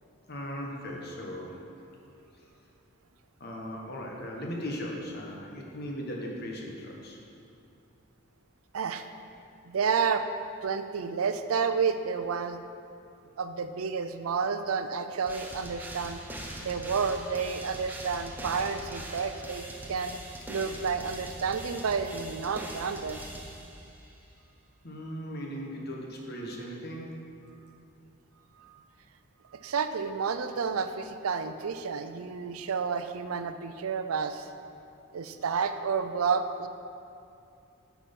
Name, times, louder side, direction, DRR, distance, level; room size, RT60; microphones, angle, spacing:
voice 1, 0.3-1.6 2.4-2.5 3.4-7.2 24.8-27.3, equal, 50° left, -1 dB, 1.3 m, -38 dB
voice 2, 8.7-9.1 9.7-10.3 10.6-12.6 13.4-16.2 16.6-20.1 20.5-23.2 28.6-28.8 29.5-34.5 35.1-36.7, right 5 dB, 80° right, 9 dB, 0.5 m, -30 dB
sound 1, 15.3-24.1, right 1 dB, 10° right, 0.7 m, -42 dB
8.4 x 6.1 x 5.3 m, 2.6 s
head